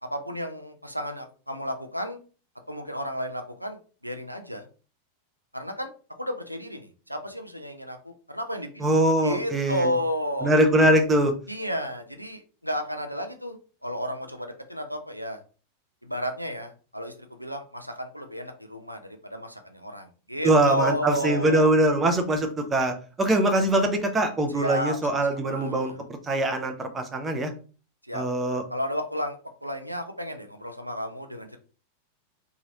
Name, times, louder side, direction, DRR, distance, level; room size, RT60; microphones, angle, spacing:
voice 1, 0.0-2.2 2.7-4.7 5.5-5.9 6.2-8.9 9.2-10.5 11.5-13.6 13.8-15.4 16.0-21.7 24.5-26.0 28.1-28.2 28.7-31.6, equal, 90° right, 5 dB, 0.4 m, -32 dB
voice 2, 8.8-9.9 10.4-11.3 20.4-25.9 26.2-27.5 28.1-28.6, right 1 dB, 15° right, 5 dB, 0.6 m, -22 dB
3.0 x 2.3 x 2.9 m, 0.37 s
figure-of-eight pair, 90°, 0 cm